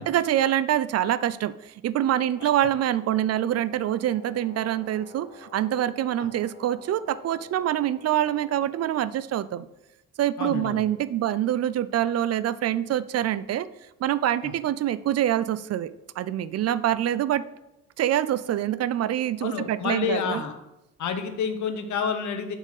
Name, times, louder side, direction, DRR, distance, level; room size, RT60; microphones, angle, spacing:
voice 1, 0.0-9.7 10.2-13.7 14.0-17.4 18.0-20.4, right 11 dB, 55° right, 16 dB, 0.4 m, -25 dB
Brass instrument, 2.0-9.1, left 6 dB, 35° left, 2.8 m, -50 dB
voice 2, 10.4-10.8 14.4-14.5 19.4-20.6 21.0-22.6, left 6 dB, 75° left, 8 dB, 1.1 m, -29 dB
7.1 x 4.1 x 6.5 m, 0.93 s
cardioid pair, 90°, 30 cm